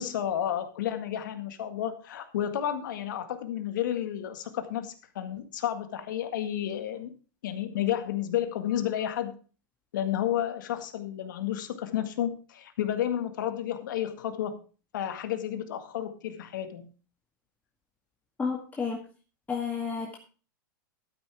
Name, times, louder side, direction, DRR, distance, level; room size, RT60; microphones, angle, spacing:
voice 1, 0.0-7.1 7.4-9.3 9.9-14.6 14.9-16.9, left 10 dB, 70° left, 8 dB, 1.8 m, -31 dB
voice 2, 18.4-19.0 19.5-20.2, left 5 dB, 15° left, -1 dB, 2.0 m, -31 dB
12.5 x 9.7 x 3.5 m, 0.36 s
hypercardioid pair, 110°, 11 cm